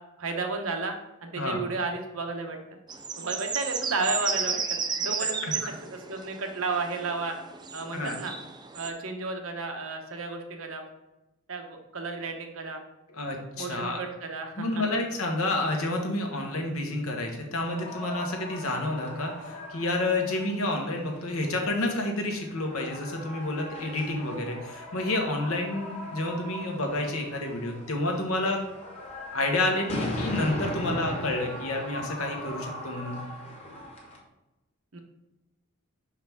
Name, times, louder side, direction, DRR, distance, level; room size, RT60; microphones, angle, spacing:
voice 1, 0.2-0.9 1.2-2.6 3.2-4.6 5.0-7.3 7.7-8.3 8.7-10.8 11.5-12.8 13.5-15.0 34.9-35.0, right 3 dB, 70° right, 4 dB, 0.9 m, -33 dB
sound 1, 2.9-8.9, right 5 dB, 20° right, 0.4 m, -33 dB
voice 2, 5.2-5.5 7.9-8.2 13.1-14.0 14.6-28.6 29.3-33.2, left 2 dB, 80° left, 2 dB, 1.2 m, -29 dB
sound 2, 17.6-34.2, left 1 dB, 30° left, 1.2 m, -39 dB
5.9 x 4.8 x 3.5 m, 0.99 s
head